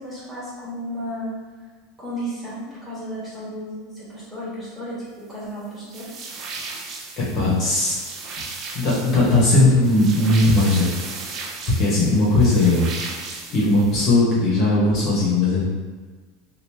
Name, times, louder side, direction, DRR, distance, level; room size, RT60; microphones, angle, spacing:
voice 1, 0.0-1.3 2.0-6.2, equal, 5° right, -10 dB, 1.4 m, -33 dB
sound 1, 5.9-14.1, right 4 dB, 35° right, 0.5 m, -36 dB
voice 2, 7.2-8.0 8.7-10.9 11.2-11.5 11.8-12.9 13.5-15.6, left 2 dB, 40° left, -7 dB, 1.0 m, -18 dB
2.9 x 2.5 x 3.4 m, 1.4 s
supercardioid pair, 145°, 0 cm